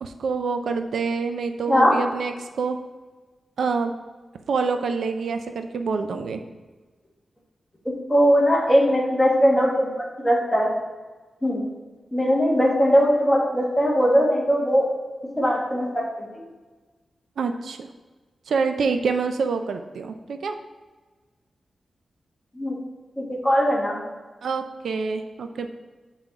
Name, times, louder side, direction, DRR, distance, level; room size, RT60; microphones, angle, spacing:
voice 1, 0.0-2.8 3.6-3.9 4.5-6.4 17.4-17.9 18.5-20.5 24.4-25.7, right 4 dB, 85° right, 7 dB, 0.5 m, -26 dB
voice 2, 7.8-9.9 10.2-10.7 11.4-11.6 12.1-14.8 15.4-16.4 22.5-22.8 23.2-24.0, equal, 10° left, -3 dB, 1.5 m, -20 dB
5.7 x 3.9 x 5.9 m, 1.3 s
wide cardioid pair, 145°, 0 cm